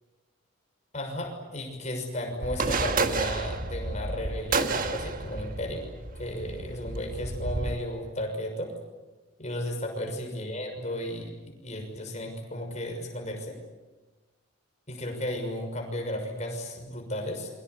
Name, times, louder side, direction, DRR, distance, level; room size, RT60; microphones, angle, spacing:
voice 1, 0.9-5.8 6.2-8.7 9.4-13.6 14.9-17.5, left 1 dB, 35° left, 3 dB, 6.3 m, -34 dB
sound 1, 2.4-7.8, right 3 dB, 45° right, 1.6 m, -31 dB
28.5 x 24.0 x 8.2 m, 1.1 s
head